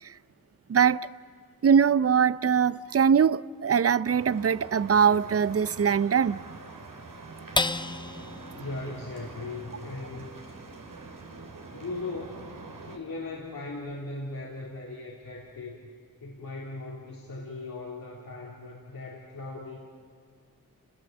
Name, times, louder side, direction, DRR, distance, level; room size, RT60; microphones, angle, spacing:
voice 1, 0.7-1.0 1.6-6.4, right 7 dB, 45° right, 0.6 m, -22 dB
sound 1, 4.0-13.0, right 3 dB, 65° right, 3.5 m, -45 dB
sound 2, 7.5-14.2 14.7-14.8 15.2-15.7, left 2 dB, 15° left, 0.8 m, -37 dB
voice 2, 8.5-10.3 11.7-12.6 12.8-15.8 16.2-19.8, left 2 dB, 75° left, 3.9 m, -38 dB
30.0 x 20.5 x 7.7 m
cardioid pair, 45°, 34 cm